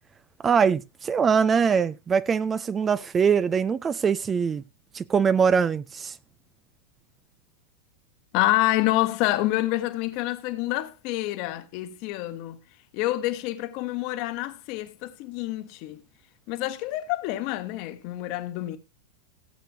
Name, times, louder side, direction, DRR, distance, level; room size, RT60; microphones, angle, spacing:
voice 1, 0.4-4.6 4.9-6.2, right 6 dB, 20° right, 0.5 m, -22 dB
voice 2, 8.3-12.6 12.9-16.0 16.5-18.8, left 16 dB, 45° left, 1.3 m, -27 dB
17.0 x 8.3 x 2.8 m
figure-of-eight pair, 90°, 0 cm